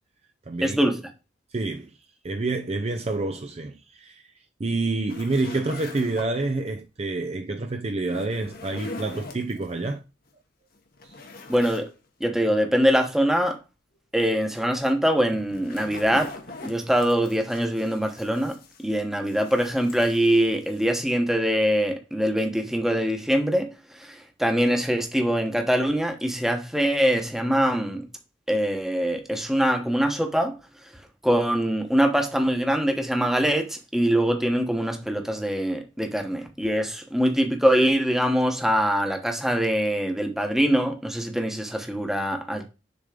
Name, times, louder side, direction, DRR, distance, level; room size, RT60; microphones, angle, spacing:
voice 1, 0.6-1.0 11.5-11.8 12.2-13.6 14.1-16.3 16.6-18.6 18.8-23.7 23.9-28.0 28.5-30.5 31.2-42.6, equal, ahead, 1.0 m, -23 dB
voice 2, 1.5-1.9 2.2-4.2 4.6-10.0 11.0-11.1, right 2 dB, 35° right, 0.5 m, -28 dB
sound 1, 5.1-6.6 8.0-9.7 10.3-10.4 10.8-11.9 12.2-12.3 15.1-19.0 19.3-21.0, left 2 dB, 55° left, 1.2 m, -42 dB
6.8 x 3.6 x 4.9 m
head